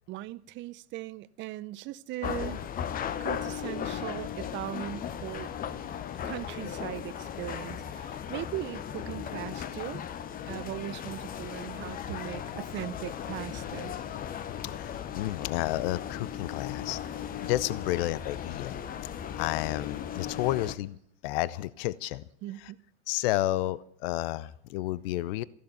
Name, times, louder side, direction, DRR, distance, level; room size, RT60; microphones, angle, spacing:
voice 1, 0.1-2.7 3.2-5.5 6.2-10.0 10.5-14.0 22.4-22.8, right 16 dB, 35° right, 0.7 m, -39 dB
sound 1, 2.2-20.8, left 9 dB, 25° left, 0.9 m, -37 dB
voice 2, 14.6-17.0 17.4-18.8 19.4-21.0 21.2-22.2 22.6-22.7 23.1-25.4, left 16 dB, 55° left, 0.7 m, -31 dB
15.0 x 11.5 x 7.9 m
hypercardioid pair, 105°, 35 cm